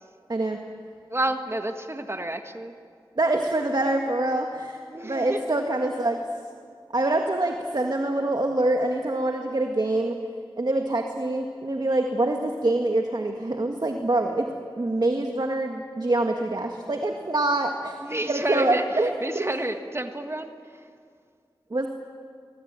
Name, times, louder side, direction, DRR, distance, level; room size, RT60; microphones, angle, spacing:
voice 1, 1.1-2.7 4.9-5.6 18.0-20.5, right 1 dB, 30° right, 6 dB, 1.5 m, -30 dB
voice 2, 3.2-6.2 6.9-10.2 10.6-14.5 14.8-17.9 18.3-19.4 21.7-21.9, right 2 dB, 50° right, 3 dB, 1.8 m, -25 dB
24.5 x 22.5 x 8.9 m, 2.2 s
wide cardioid pair, 55°, 9 cm